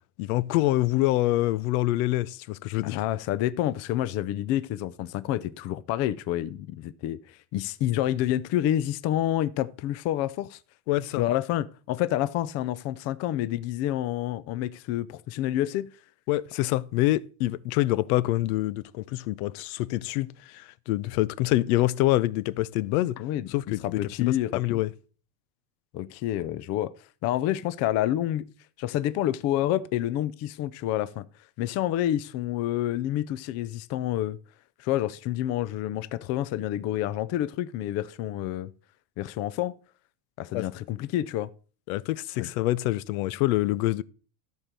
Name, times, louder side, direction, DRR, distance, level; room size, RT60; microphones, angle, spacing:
voice 1, 0.2-3.0 10.9-11.2 16.3-23.2 23.5-24.9 40.5-40.7 41.9-44.0, left 17 dB, 75° left, 0.7 m, -26 dB
voice 2, 2.8-10.6 11.2-15.9 23.2-24.8 25.9-26.9 27.2-28.5 28.8-31.3 31.6-34.4 34.8-38.7 39.2-39.7 40.4-41.5 42.4-42.5, left 13 dB, 35° left, 0.5 m, -28 dB
13.5 x 4.6 x 6.7 m
cardioid pair, 160°, 43 cm